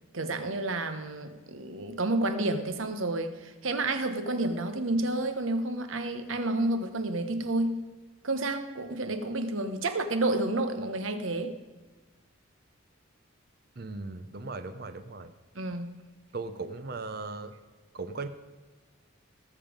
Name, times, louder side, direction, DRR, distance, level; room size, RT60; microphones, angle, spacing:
voice 1, 0.1-7.8 8.2-11.6 15.5-15.9, right 2 dB, 75° right, 9 dB, 1.2 m, -30 dB
voice 2, 13.8-15.3 16.3-17.5 17.9-18.3, right 3 dB, 50° right, 10 dB, 0.7 m, -37 dB
18.5 x 7.2 x 5.2 m, 1.3 s
head